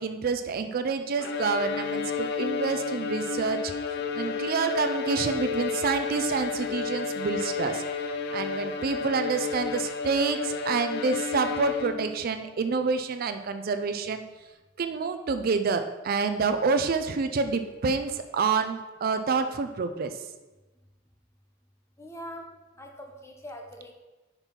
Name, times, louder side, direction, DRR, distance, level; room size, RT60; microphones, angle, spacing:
voice 1, 0.0-3.7 4.2-7.8 8.3-14.2 14.8-20.2, right 4 dB, 50° right, 8 dB, 0.4 m, -28 dB
Bowed string instrument, 1.2-12.2, left 5 dB, 60° left, 0.5 m, -31 dB
voice 2, 22.0-22.5 22.8-23.9, equal, 15° left, 2 dB, 0.8 m, -42 dB
5.3 x 4.4 x 5.6 m, 1.1 s
head